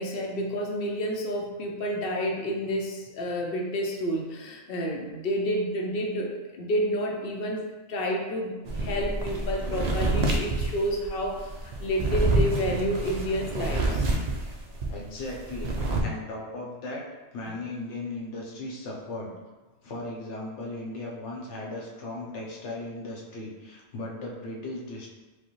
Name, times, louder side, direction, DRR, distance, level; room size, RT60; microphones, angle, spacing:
voice 1, 0.0-14.0, equal, 60° left, 0 dB, 0.7 m, -30 dB
sound 1, 8.7-14.9 15.2-16.0, right 2 dB, 55° right, 0.4 m, -27 dB
voice 2, 14.9-15.7 16.0-17.0 17.3-19.3 19.8-25.1, left 2 dB, 80° left, -2 dB, 1.1 m, -37 dB
5.0 x 2.1 x 3.0 m, 1.2 s
omnidirectional pair, 1.2 m